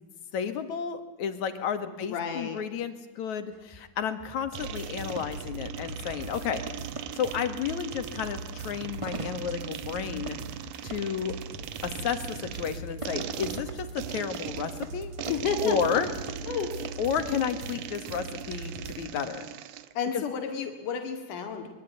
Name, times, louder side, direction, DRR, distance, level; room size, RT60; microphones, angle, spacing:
voice 1, 0.3-6.9 7.1-10.4 10.8-11.4 11.8-15.1 15.6-16.1 17.0-19.5 20.1-20.2, left 7 dB, 70° left, 9 dB, 3.2 m, -32 dB
voice 2, 2.1-2.6 15.3-16.0 16.5-16.8 17.3-17.5 20.0-21.7, left 6 dB, 90° left, 5 dB, 3.7 m, -31 dB
sound 1, 3.5-16.9, right 2 dB, 25° right, 0.7 m, -45 dB
sound 2, 4.5-19.0, right 3 dB, 60° right, 3.5 m, -41 dB
sound 3, 4.5-19.9, right 12 dB, 80° right, 2.5 m, -40 dB
26.0 x 22.5 x 9.4 m, 1.2 s
omnidirectional pair, 3.5 m